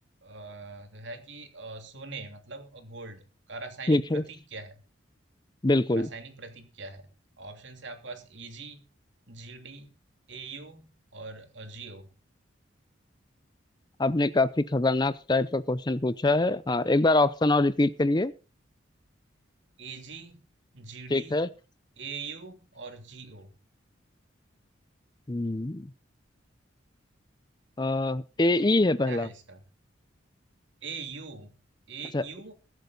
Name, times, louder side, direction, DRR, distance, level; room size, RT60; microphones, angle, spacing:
voice 1, 0.2-3.2 3.5-4.8 5.9-7.1 7.4-8.8 9.3-9.9 10.3-12.1 19.8-20.5 20.7-21.4 22.0-23.5 29.0-29.6 30.8-31.6 31.9-32.5, right 4 dB, 70° right, 5 dB, 3.0 m, -42 dB
voice 2, 3.9-4.2 5.6-6.1 14.0-18.3 21.1-21.5 25.3-25.9 27.8-29.3 32.1-32.2, left 2 dB, 20° left, 16 dB, 0.5 m, -24 dB
22.5 x 8.1 x 4.0 m, 0.31 s
head